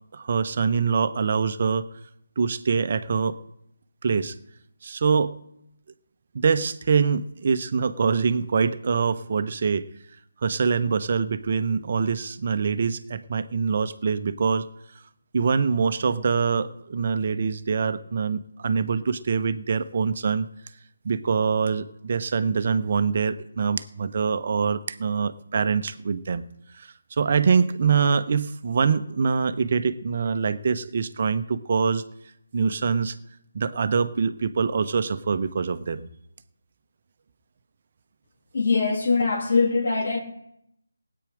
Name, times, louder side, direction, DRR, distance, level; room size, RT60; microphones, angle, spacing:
voice 1, 0.1-1.8 2.4-3.3 4.0-4.3 4.8-5.3 6.3-9.8 10.4-14.7 15.3-20.5 21.0-26.4 26.7-26.9 27.2-32.0 32.5-33.2 33.5-36.1, right 5 dB, 40° right, 0.9 m, -24 dB
voice 2, 38.5-40.2, left 4 dB, 50° left, 3.0 m, -22 dB
19.5 x 8.9 x 5.0 m
figure-of-eight pair, 155°, 0 cm